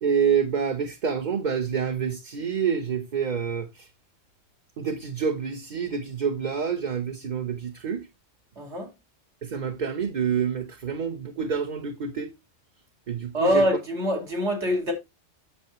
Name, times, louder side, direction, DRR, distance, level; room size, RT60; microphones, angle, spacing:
voice 1, 0.0-3.9 4.8-8.1 9.4-12.3 13.1-13.6, right 7 dB, 45° right, 0.9 m, -27 dB
voice 2, 8.6-8.9 13.3-14.9, equal, 65° right, 2.7 m, -24 dB
8.6 x 6.8 x 3.0 m
omnidirectional pair, 1.3 m